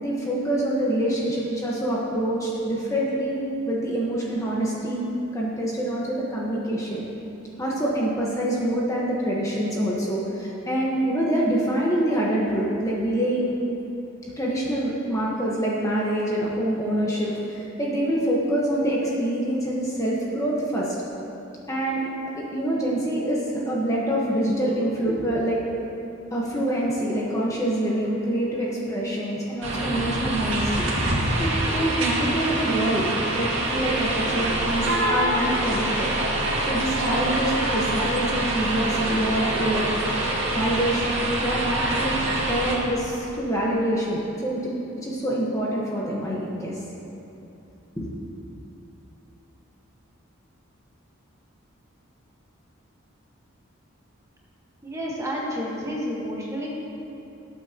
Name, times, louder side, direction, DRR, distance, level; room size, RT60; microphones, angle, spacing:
voice 1, 0.0-5.0 5.3-7.0 7.6-13.5 14.4-20.9 21.7-22.1 22.4-25.6 26.3-30.9 31.4-36.1 36.6-39.9 40.5-41.6 41.9-42.1 42.5-46.8 48.0-48.1, right 1 dB, 15° left, -5 dB, 1.3 m, -26 dB
sound 1, 29.6-42.8, right 1 dB, 65° right, 2.1 m, -25 dB
voice 2, 54.8-56.7, equal, 15° right, -4 dB, 1.5 m, -30 dB
19.0 x 8.7 x 3.0 m, 2.9 s
head